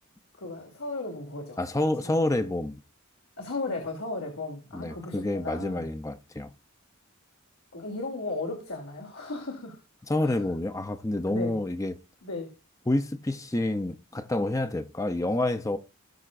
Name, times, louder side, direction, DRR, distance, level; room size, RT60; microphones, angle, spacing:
voice 1, 0.4-1.6 2.0-2.3 3.4-5.9 7.7-9.8 10.2-10.4 11.3-11.6 12.2-12.5, left 2 dB, 80° left, 2.8 m, -35 dB
voice 2, 1.6-2.8 4.7-6.5 10.1-12.0 12.9-15.8, left 1 dB, 15° left, 0.6 m, -28 dB
18.0 x 6.8 x 2.5 m
head